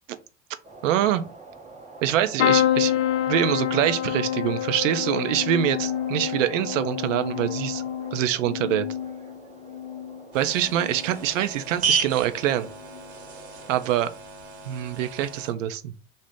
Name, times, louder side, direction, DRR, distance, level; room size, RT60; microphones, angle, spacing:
sound 1, 0.6-14.0, right 3 dB, 20° right, 0.7 m, -46 dB
voice 1, 0.8-1.2 2.0-2.9 3.3-7.8 8.1-8.9 10.3-12.7 13.7-14.1 14.7-15.9, right 11 dB, 70° right, 0.5 m, -24 dB
sound 2, 2.4-10.2 10.7-11.2 12.5-12.7 12.9-13.0, left 11 dB, 40° left, 0.4 m, -27 dB
sound 3, 10.3-15.5, right 5 dB, 40° right, 1.0 m, -32 dB
2.7 x 2.0 x 3.4 m
hypercardioid pair, 75°, 39 cm